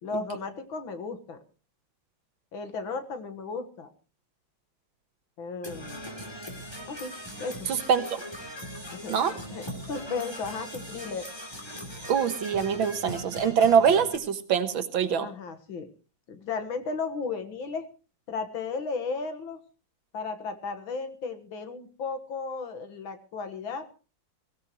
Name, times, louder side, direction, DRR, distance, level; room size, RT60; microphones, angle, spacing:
voice 1, 0.0-1.4 2.5-3.9 5.4-6.1 6.9-7.1 7.4-7.7 8.9-9.2 9.5-11.3 15.2-15.9 16.3-17.9 18.3-19.6 20.1-24.0, left 4 dB, 75° left, 8 dB, 2.4 m, -35 dB
Percussion / Brass instrument, 5.6-14.2, equal, 10° left, 3.1 m, -40 dB
voice 2, 7.7-8.2 9.1-9.3 12.1-15.3, right 7 dB, 75° right, 10 dB, 2.1 m, -24 dB
23.0 x 16.0 x 3.1 m, 0.34 s
omnidirectional pair, 2.2 m